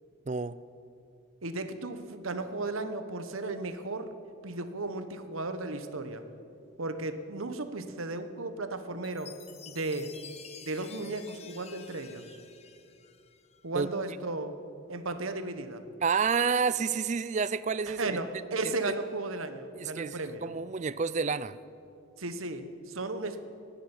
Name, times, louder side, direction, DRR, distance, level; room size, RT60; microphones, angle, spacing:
voice 1, 0.3-0.6 13.7-13.9 16.0-18.2 18.6-18.7 19.8-21.6, right 5 dB, 35° right, 16 dB, 0.4 m, -29 dB
voice 2, 1.4-4.1 4.4-6.2 6.8-9.3 9.7-10.1 10.6-12.4 13.6-14.6 14.9-15.8 17.9-20.5 22.2-23.5, right 2 dB, 75° right, 9 dB, 1.1 m, -35 dB
Chime, 9.0-13.6, left 7 dB, 30° left, 0.9 m, -50 dB
14.5 x 10.5 x 9.9 m, 2.6 s
head